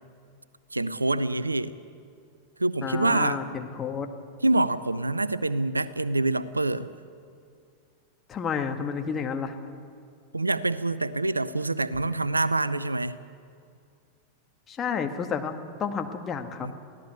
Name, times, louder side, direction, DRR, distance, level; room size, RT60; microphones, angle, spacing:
voice 1, 0.7-1.8 2.6-3.4 4.4-6.9 10.3-13.2 16.6-16.7, right 2 dB, 80° right, 17 dB, 0.6 m, -26 dB
voice 2, 2.8-4.1 8.3-9.6 14.7-16.7, left 6 dB, 25° left, 6 dB, 1.7 m, -31 dB
23.0 x 16.5 x 8.2 m, 2.3 s
figure-of-eight pair, 90°, 0 cm